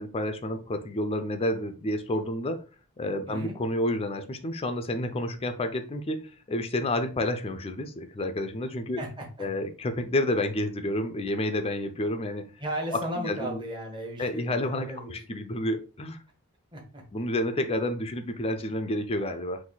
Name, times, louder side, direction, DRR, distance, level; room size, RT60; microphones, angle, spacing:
voice 1, 0.0-2.6 3.0-9.0 9.4-12.5 12.9-13.6 14.2-16.2 17.1-19.6, left 1 dB, 25° left, 7 dB, 0.5 m, -30 dB
voice 2, 3.3-3.6 8.9-9.6 12.6-15.2 16.7-17.0, right 1 dB, 20° right, 0 dB, 1.1 m, -36 dB
4.1 x 2.6 x 3.9 m, 0.33 s
head